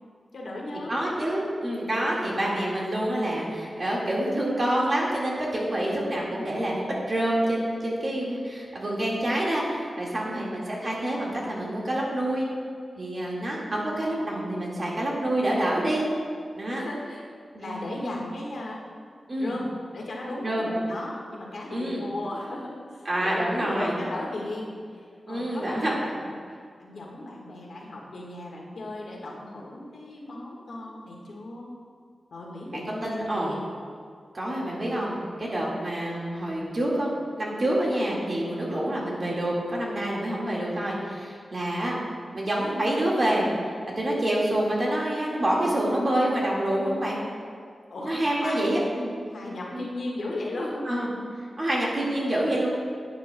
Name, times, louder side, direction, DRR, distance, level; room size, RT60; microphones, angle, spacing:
voice 1, 0.3-1.0 10.1-10.5 16.7-17.2 17.6-18.8 19.4-31.7 32.3-33.6 38.5-38.8 47.9-48.6 49.3-50.9, left 1 dB, 85° left, -3 dB, 1.5 m, -36 dB
voice 2, 0.9-12.5 13.0-16.0 16.5-16.8 17.5-18.2 19.3-19.6 20.4-20.7 21.7-22.0 23.1-23.9 25.3-25.9 32.7-33.5 34.3-41.9 42.3-47.2 48.0-49.1 49.7-49.9 50.9-51.1 51.6-52.7, right 1 dB, 40° right, -4 dB, 1.8 m, -27 dB
11.0 x 8.9 x 2.2 m, 2.2 s
wide cardioid pair, 130°, 0 cm